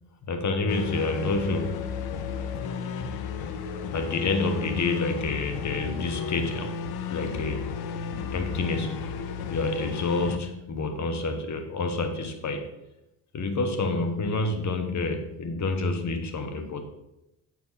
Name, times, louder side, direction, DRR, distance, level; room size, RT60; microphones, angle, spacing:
voice 1, 0.3-1.9 3.9-6.8 7.1-7.7 8.3-9.2 9.5-12.7 13.3-16.8, left 3 dB, 50° left, 6 dB, 1.3 m, -28 dB
sound 1, 0.7-10.4, left 6 dB, 85° left, 0.7 m, -33 dB
7.7 x 4.5 x 5.6 m, 0.89 s
cardioid pair, 90°, 36 cm